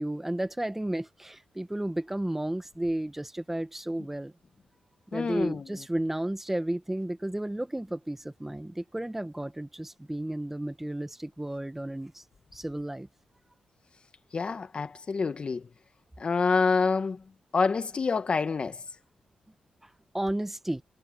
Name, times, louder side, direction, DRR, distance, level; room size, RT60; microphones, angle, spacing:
voice 1, 0.0-4.3 5.1-12.2 12.5-13.1 20.1-20.8, right 1 dB, 10° right, 1.3 m, -33 dB
voice 2, 5.1-5.6 14.3-15.6 16.2-17.2 17.5-18.8, left 4 dB, 45° left, 1.3 m, -27 dB
cardioid pair, 80°, 2 cm